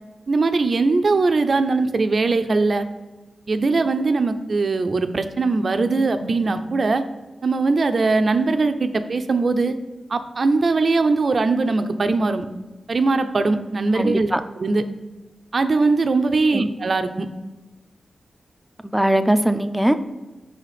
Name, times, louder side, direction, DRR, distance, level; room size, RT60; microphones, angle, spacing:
voice 1, 0.3-2.9 3.5-7.0 7.4-9.8 10.1-12.5 12.9-14.3 14.6-14.8 15.5-17.3, right 3 dB, 55° right, 9 dB, 0.5 m, -20 dB
voice 2, 13.9-14.4 16.5-16.7 18.9-20.0, right 1 dB, 5° right, 9 dB, 0.5 m, -20 dB
5.6 x 4.1 x 5.0 m, 1.2 s
cardioid pair, 65°, 0 cm